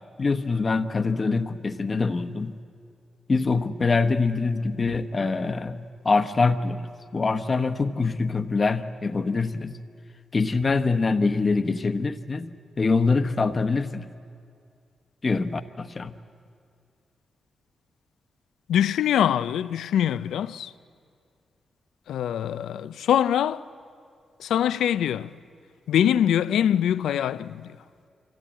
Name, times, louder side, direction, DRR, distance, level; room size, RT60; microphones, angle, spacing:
voice 1, 0.2-2.5 3.3-6.9 7.1-9.7 10.3-14.1 15.2-16.1, left 4 dB, 40° left, 1.0 m, -24 dB
voice 2, 18.7-20.7 22.1-23.6 24.4-25.3 25.9-27.7, left 10 dB, 90° left, 0.4 m, -23 dB
25.0 x 15.5 x 8.8 m
cardioid pair, 60°, 0 cm